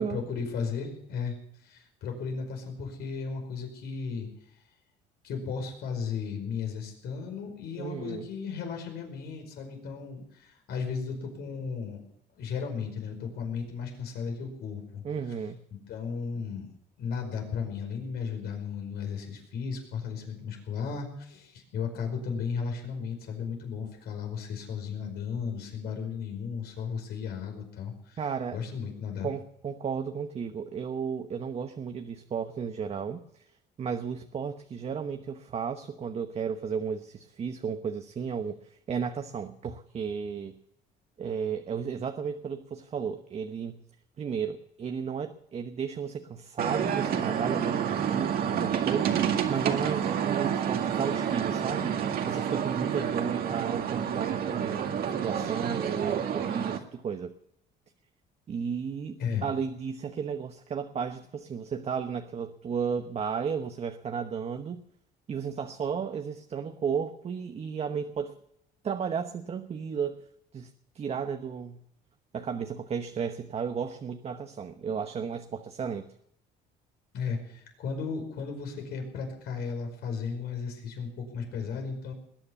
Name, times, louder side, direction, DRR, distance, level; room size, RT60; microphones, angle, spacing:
voice 1, 0.0-1.3 1.6-4.3 5.2-12.0 12.3-15.0 15.9-16.7 17.0-28.2 28.5-29.3 59.2-59.5 77.1-82.1, left 6 dB, 70° left, 3 dB, 5.1 m, -35 dB
voice 2, 7.8-8.3 15.0-15.6 28.2-28.6 29.2-33.4 33.8-40.6 41.2-43.8 44.2-57.3 58.5-64.8 65.3-68.4 68.8-70.3 70.5-71.8 72.3-76.1, right 6 dB, 40° right, 7 dB, 1.0 m, -34 dB
sound 1, 46.6-56.8, right 8 dB, 65° right, 2.0 m, -29 dB
20.5 x 9.7 x 7.0 m, 0.74 s
cardioid pair, 110°, 17 cm